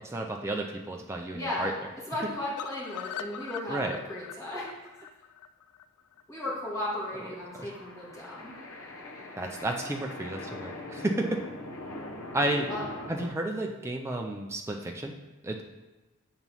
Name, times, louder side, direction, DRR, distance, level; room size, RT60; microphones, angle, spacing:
voice 1, 0.1-1.7 3.7-4.0 7.5-7.7 9.4-11.4 12.3-12.7 13.1-15.1 15.4-15.6, right 1 dB, 10° right, 1 dB, 0.3 m, -32 dB
voice 2, 1.3-1.8 2.1-4.7 6.3-8.5 12.7-12.9, left 1 dB, 15° left, -8 dB, 1.9 m, -35 dB
sound 1, 2.6-6.6 6.9-7.0 7.3-7.4 7.7-7.8, left 8 dB, 85° left, 0.3 m, -42 dB
sound 2, 6.9-13.3, left 1 dB, 70° left, 0.7 m, -42 dB
7.1 x 3.0 x 5.4 m, 1.1 s
head